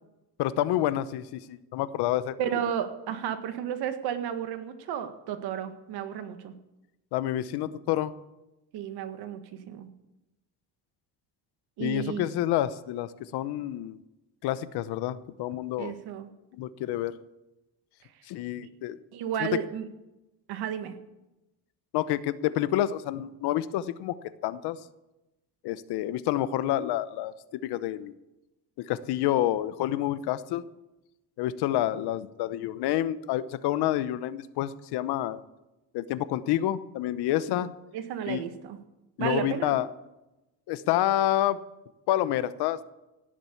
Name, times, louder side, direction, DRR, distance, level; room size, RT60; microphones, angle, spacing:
voice 1, 0.4-2.6 7.1-8.1 11.8-14.0 14.4-15.9 16.5-17.1 18.3-19.0 19.4-19.5 21.9-24.2 24.4-24.8 25.6-28.2 28.8-30.6 31.4-35.4 35.9-37.7 38.3-38.4 39.2-39.9 40.7-41.6 42.1-42.8, left 13 dB, 80° left, 15 dB, 0.9 m, -28 dB
voice 2, 2.4-6.5 8.7-9.4 9.7-9.9 11.8-12.2 15.8-16.3 19.1-19.9 20.5-20.9 37.9-38.8 39.2-39.7, right 9 dB, 75° right, 8 dB, 1.8 m, -32 dB
17.0 x 7.6 x 8.4 m, 0.98 s
cardioid pair, 155°, 39 cm